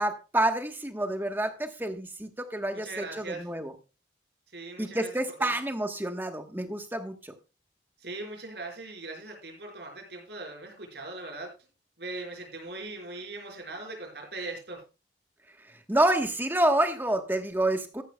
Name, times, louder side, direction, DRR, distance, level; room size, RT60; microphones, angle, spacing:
voice 1, 0.0-3.7 4.8-7.3 15.9-18.0, right 1 dB, 10° right, 6 dB, 1.2 m, -28 dB
voice 2, 2.7-3.5 4.5-5.5 8.0-11.5 12.0-14.8, right 2 dB, 70° right, 1 dB, 4.9 m, -40 dB
14.0 x 11.5 x 2.3 m, 0.30 s
head